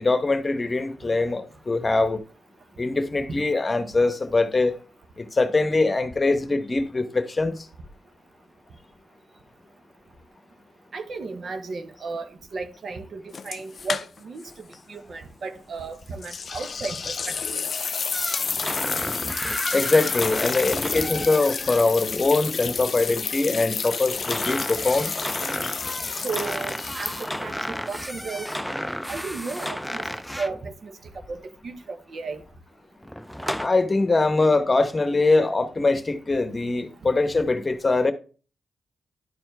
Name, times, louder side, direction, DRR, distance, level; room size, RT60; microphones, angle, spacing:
voice 1, 0.0-2.2 2.8-4.8 5.2-7.7 19.7-25.1 33.6-38.1, left 3 dB, 35° left, 1.0 m, -22 dB
voice 2, 10.9-17.7 26.1-28.5 29.1-30.0 30.4-32.4, right 4 dB, 65° right, 1.1 m, -35 dB
sound 1, 13.3-14.5 14.7-14.8 16.2-27.5, left 5 dB, 55° left, 0.4 m, -30 dB
sound 2, 18.1-21.8 24.1-30.6 33.0-33.7, equal, ahead, 0.5 m, -32 dB
11.0 x 4.4 x 3.4 m
cardioid pair, 55°, 0 cm